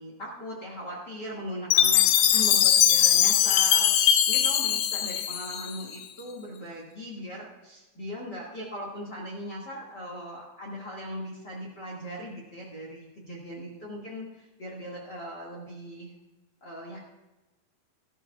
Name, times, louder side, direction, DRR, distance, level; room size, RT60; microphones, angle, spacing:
voice 1, 0.0-16.1 16.6-17.0, equal, 45° left, -3 dB, 1.4 m, -39 dB
Chime, 1.7-6.0, left 10 dB, 85° left, 1.9 m, -21 dB
17.0 x 12.5 x 2.3 m, 1.1 s
omnidirectional pair, 4.8 m